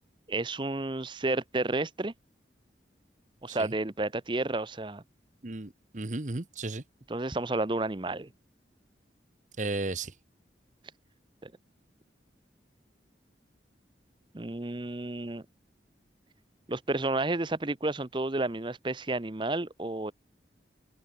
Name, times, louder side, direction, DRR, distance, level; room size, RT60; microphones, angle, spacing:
voice 1, 0.3-2.1 3.4-5.0 7.1-8.3 11.4-11.5 14.3-15.4 16.7-20.1, right 2 dB, 25° right, 0.8 m, -31 dB
voice 2, 5.4-6.8 9.6-10.1, right 2 dB, 45° right, 1.1 m, -34 dB
head